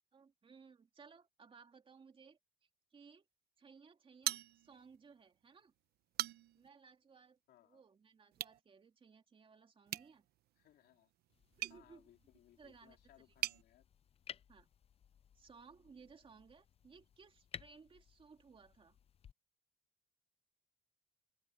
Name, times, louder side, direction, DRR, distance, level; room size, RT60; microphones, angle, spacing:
voice 1, 0.1-3.3 3.6-5.7 6.5-10.2 11.6-12.1 12.6-13.0 14.5-14.7 15.3-19.0, right 5 dB, 30° right, 2.5 m, -61 dB
sound 1, 4.2-5.0 5.4-5.5 6.0-6.7 8.3-8.6 9.9-13.6, right 14 dB, 70° right, 0.9 m, -43 dB
voice 2, 7.5-7.8 10.6-11.1 11.7-13.9, left 13 dB, 70° left, 3.5 m, -67 dB
sound 2, 11.3-19.3, left 8 dB, 35° left, 0.6 m, -57 dB
open air
cardioid pair, 110°, 17 cm